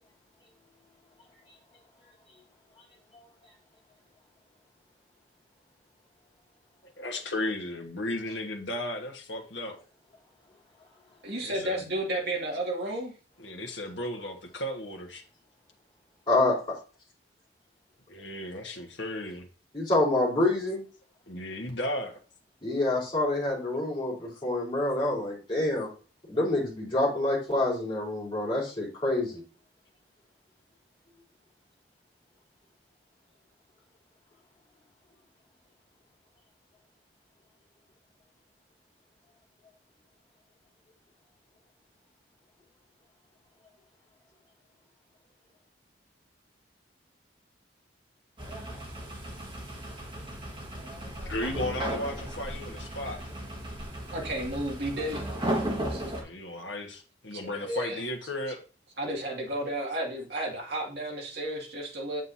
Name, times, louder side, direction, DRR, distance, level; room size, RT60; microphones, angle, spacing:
voice 1, 7.0-9.8 11.4-11.8 13.4-15.2 18.1-19.5 21.3-22.2 51.2-53.2 56.2-58.6, left 1 dB, 70° left, 1.5 m, -35 dB
voice 2, 11.2-13.1 54.1-55.3 55.9-56.0 57.3-58.0 59.0-62.2, right 1 dB, 55° right, 2.3 m, -32 dB
voice 3, 16.3-16.6 19.7-20.8 22.6-25.9 26.3-29.4, left 2 dB, 25° left, 4.4 m, -27 dB
sound 1, 48.4-56.2, right 1 dB, 25° right, 1.7 m, -35 dB
8.0 x 7.6 x 2.8 m
head